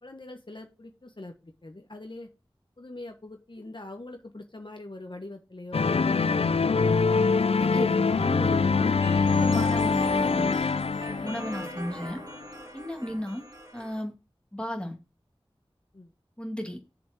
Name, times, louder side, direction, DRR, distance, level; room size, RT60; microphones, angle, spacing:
voice 1, 0.0-2.3 2.8-6.5 6.7-7.4 15.9-16.1, left 2 dB, 55° left, 1.2 m, -43 dB
sound 1, 5.7-12.0, left 4 dB, 90° left, 0.4 m, -24 dB
voice 2, 7.5-10.6 11.2-12.2 12.7-13.5 13.7-14.1 14.5-15.0 16.4-16.8, equal, 10° left, 2.4 m, -34 dB
sound 2, 9.0-14.0, right 1 dB, 40° right, 2.7 m, -42 dB
7.3 x 5.1 x 6.0 m
wide cardioid pair, 45°, 10 cm